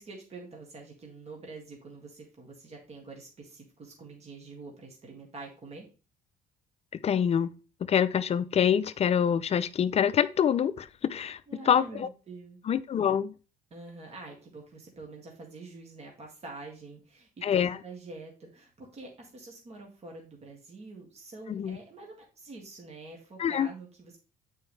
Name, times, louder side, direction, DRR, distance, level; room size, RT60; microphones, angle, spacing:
voice 1, 0.0-5.9 11.5-12.6 13.7-24.2, right 3 dB, 40° right, 1.9 m, -46 dB
voice 2, 7.0-7.5 7.9-11.4 11.7-12.1 12.7-13.3 17.4-17.8 21.5-21.8 23.4-23.7, left 8 dB, 40° left, 0.5 m, -25 dB
8.1 x 4.6 x 3.3 m
cardioid pair, 110°, 17 cm